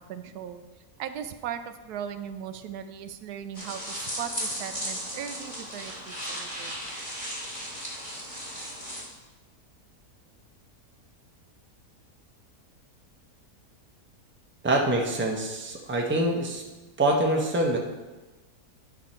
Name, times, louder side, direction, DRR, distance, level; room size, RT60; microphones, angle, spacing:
voice 1, 0.1-0.6 1.0-6.8, right 9 dB, 85° right, 10 dB, 1.1 m, -38 dB
sound 1, 3.5-9.0, equal, 30° left, 2.1 m, -36 dB
voice 2, 14.6-16.6 17.0-17.8, right 1 dB, 10° right, 0 dB, 0.8 m, -25 dB
10.5 x 5.1 x 4.4 m, 1.2 s
omnidirectional pair, 1.6 m